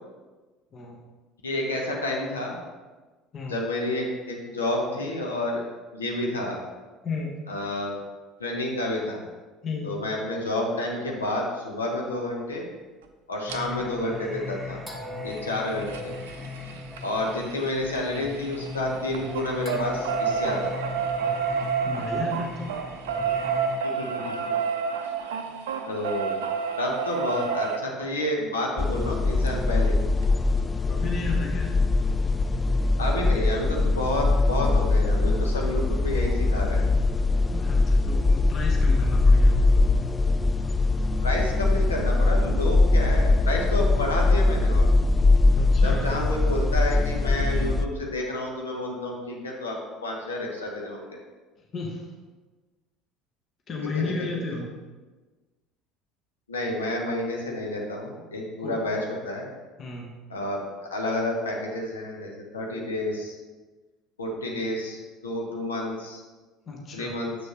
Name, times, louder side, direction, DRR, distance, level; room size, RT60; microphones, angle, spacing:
voice 1, 1.4-2.6 3.5-5.6 5.9-6.6 7.5-8.0 8.4-9.2 9.8-12.6 13.3-14.8 15.2-16.1 17.0-20.7 23.8-24.5 25.9-26.4 26.8-30.0 33.0-36.8 41.2-44.9 45.8-51.2 53.9-54.1 56.5-59.5 60.3-60.6 60.9-63.4 64.2-66.2 66.9-67.4, left 1 dB, 80° left, 0 dB, 1.0 m, -30 dB
voice 2, 7.0-7.4 9.6-9.9 21.9-22.7 30.8-31.8 37.5-39.9 45.6-46.1 51.6-52.1 53.7-54.7 58.6-58.8 59.8-60.1 66.7-67.1, left 3 dB, 40° left, 0 dB, 1.1 m, -33 dB
Singing, 13.5-23.8, left 2 dB, 5° left, 1.3 m, -38 dB
sound 1, 13.5-13.6 15.2-18.8 19.1-27.8 29.5-29.6 29.8-29.9 30.2-30.3, right 6 dB, 70° right, 0.5 m, -29 dB
sound 2, 28.8-47.9, left 2 dB, 20° left, 0.4 m, -22 dB
7.0 x 6.3 x 3.0 m, 1.3 s
figure-of-eight pair, 60°, 0 cm